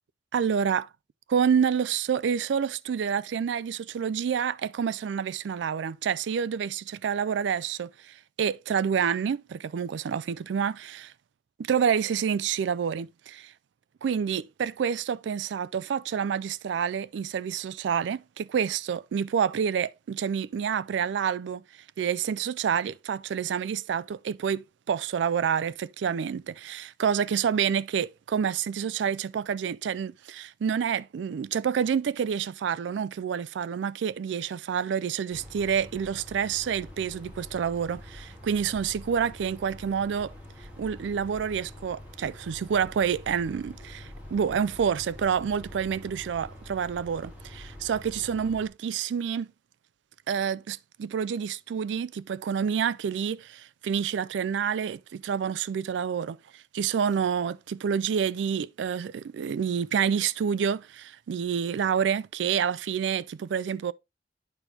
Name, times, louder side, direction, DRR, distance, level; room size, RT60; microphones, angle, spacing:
voice 1, 0.3-0.9 1.3-11.1 11.6-13.5 14.0-21.6 22.0-40.3 40.8-49.5 50.3-63.9, right 7 dB, 80° right, 0.3 m, -28 dB
Air Conditioner Fan Hum, 35.3-48.7, left 1 dB, 10° right, 2.3 m, -46 dB
8.9 x 6.0 x 2.8 m
head